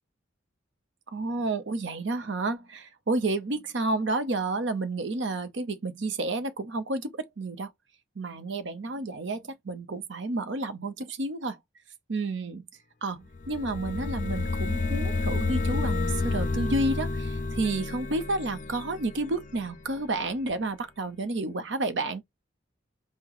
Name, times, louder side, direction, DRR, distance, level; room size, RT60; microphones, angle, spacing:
voice 1, 1.1-7.7 8.2-11.6 12.1-12.6 13.0-22.2, right 2 dB, 65° right, 0.7 m, -30 dB
sound 1, 13.3-20.0, left 3 dB, 40° left, 0.4 m, -30 dB
5.7 x 2.1 x 3.0 m
head